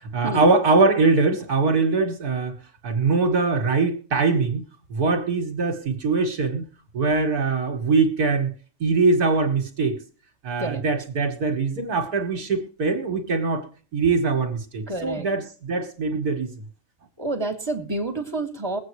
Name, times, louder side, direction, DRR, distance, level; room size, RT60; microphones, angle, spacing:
voice 1, 0.1-2.6 2.8-4.6 4.9-6.6 6.9-8.5 8.8-10.0 10.4-13.7 13.9-16.5, right 3 dB, 65° right, 3 dB, 2.0 m, -22 dB
voice 2, 14.9-15.3 17.2-18.8, right 2 dB, 15° right, 2 dB, 2.2 m, -28 dB
22.0 x 8.5 x 3.1 m, 0.40 s
omnidirectional pair, 1.7 m